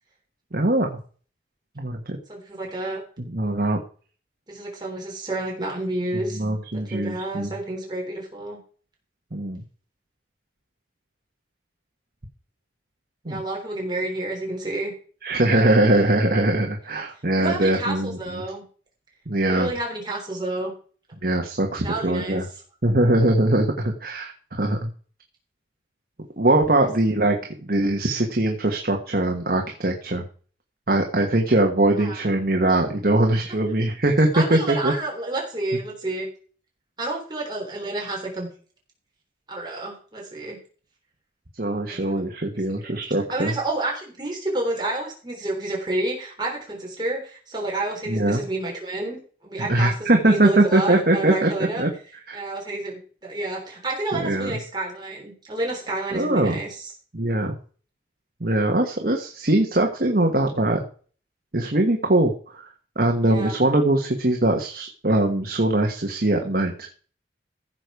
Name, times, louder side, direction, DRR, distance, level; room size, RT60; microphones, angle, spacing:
voice 1, 0.5-1.0 1.8-2.2 3.2-3.8 6.1-7.5 9.3-9.6 13.2-13.4 15.2-18.4 19.3-19.7 21.2-22.4 22.8-24.9 26.4-30.3 30.9-34.9 41.5-43.5 48.1-48.4 49.6-51.9 52.3-52.4 54.2-54.6 56.1-56.6 57.1-57.6 58.4-60.8 61.5-66.9, right 1 dB, 50° right, 2 dB, 1.4 m, -22 dB
voice 2, 2.3-3.0 4.5-6.4 6.7-8.6 13.2-14.9 17.4-18.6 19.5-20.7 21.8-22.4 26.7-26.9 32.0-32.2 34.3-36.3 37.0-38.5 39.5-40.6 41.8-42.2 42.8-43.0 43.3-51.8 52.3-56.9 63.2-63.5, right 2 dB, 25° right, -1 dB, 3.5 m, -29 dB
15.0 x 6.8 x 4.8 m, 0.42 s
head